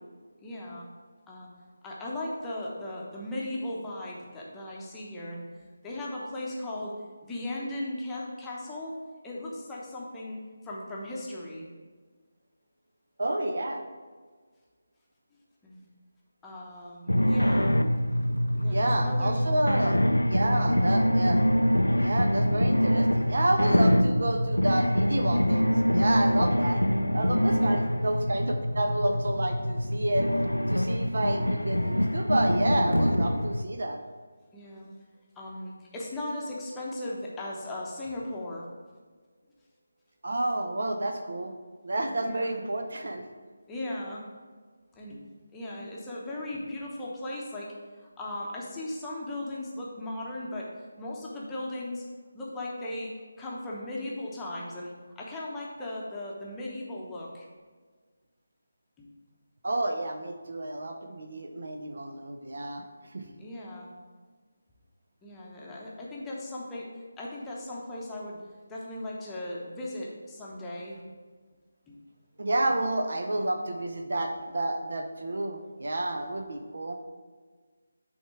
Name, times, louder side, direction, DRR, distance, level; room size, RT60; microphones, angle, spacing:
voice 1, 0.4-0.9 1.3-1.5 1.8-5.5 5.8-7.0 7.3-9.0 9.2-11.7 15.6-15.9 16.4-17.7 18.6-19.9 27.5-27.9 34.5-34.9 35.4-38.7 42.2-42.5 43.7-44.2 44.9-45.2 45.5-52.1 52.3-57.5 59.0-59.1 63.2-63.9 65.2-66.9 67.2-68.4 68.7-71.0 71.9-72.0, left 1 dB, 10° left, -5 dB, 0.9 m, -37 dB
voice 2, 13.2-13.8 18.6-20.0 20.2-21.4 22.0-26.8 27.1-30.3 30.7-34.0 40.2-41.5 41.8-43.2 59.6-62.8 63.1-63.2 72.4-76.9, right 1 dB, 60° right, 5 dB, 0.7 m, -30 dB
sound 1, 17.1-33.6, equal, 85° left, 0.4 m, -25 dB
8.0 x 3.6 x 4.7 m, 1.5 s
figure-of-eight pair, 155°, 0 cm